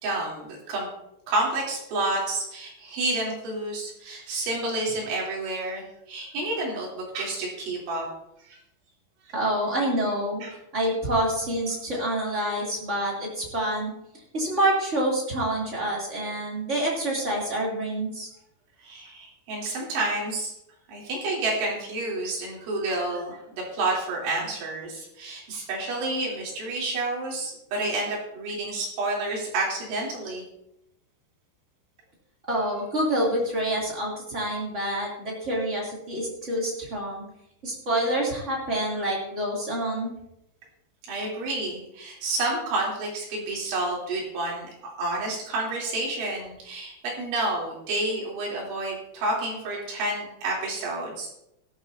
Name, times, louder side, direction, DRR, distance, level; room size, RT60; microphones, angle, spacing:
voice 1, 0.0-0.9 1.3-8.1 8.4-8.6 10.4-10.5 18.8-20.5 20.9-30.4 41.1-51.3, right 2 dB, 80° right, -4 dB, 5.9 m, -29 dB
voice 2, 9.3-10.4 10.7-13.9 14.3-18.3 32.5-37.2 37.6-40.1, right 1 dB, 20° right, -3 dB, 2.5 m, -27 dB
16.5 x 12.5 x 2.8 m, 0.83 s
omnidirectional pair, 5.4 m